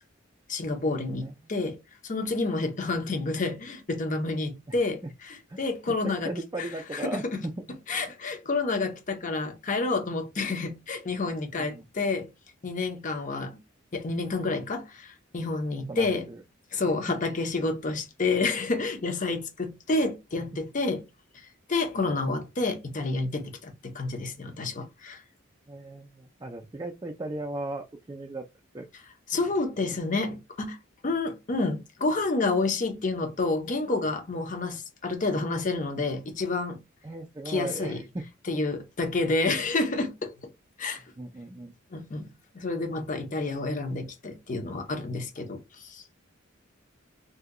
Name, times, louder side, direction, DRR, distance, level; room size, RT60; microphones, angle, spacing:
voice 1, 0.5-1.8 2.0-6.3 6.6-7.2 7.9-12.3 12.6-13.6 13.9-16.3 16.7-21.0 21.7-25.2 29.3-30.8 31.0-36.8 37.5-38.0 38.5-40.3 40.8-41.0 41.9-42.3 42.5-46.0, left 3 dB, 40° left, 0.6 m, -29 dB
voice 2, 6.2-7.8 11.6-11.9 15.9-16.4 25.7-28.5 28.7-28.9 37.0-38.2 41.2-41.7, right 2 dB, 20° right, 0.3 m, -37 dB
2.7 x 2.2 x 3.6 m
head